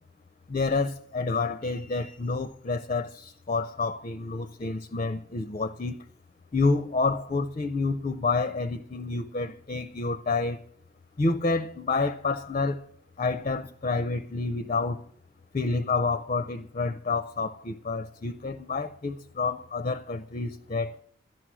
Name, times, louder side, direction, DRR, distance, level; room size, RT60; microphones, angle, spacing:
voice 1, 0.5-6.0 6.5-10.6 11.2-12.8 13.2-15.0 15.5-21.0, left 3 dB, 30° left, 0.4 m, -29 dB
12.5 x 10.5 x 6.1 m
head